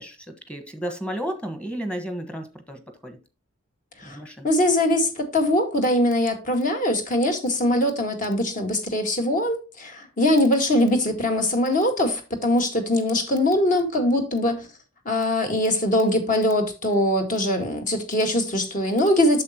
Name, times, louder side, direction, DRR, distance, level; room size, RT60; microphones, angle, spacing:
voice 1, 0.0-3.2 4.0-4.5, equal, 5° left, 1.3 m, -33 dB
voice 2, 4.4-14.7 15.0-19.4, left 1 dB, 40° left, 1.8 m, -22 dB
8.5 x 6.9 x 2.9 m
head